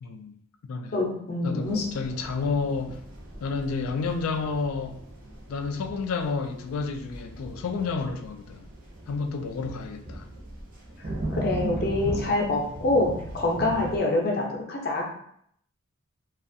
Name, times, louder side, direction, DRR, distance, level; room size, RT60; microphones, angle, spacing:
voice 1, 0.0-0.3 0.7-1.0 1.4-3.0 3.4-5.0 5.5-8.7 9.1-10.3, left 4 dB, 90° left, 0.3 m, -30 dB
voice 2, 0.9-1.8 11.3-15.1, left 2 dB, 45° left, 0.6 m, -26 dB
sound 1, 1.6-14.0, right 1 dB, 40° right, 0.5 m, -38 dB
2.4 x 2.3 x 2.5 m
head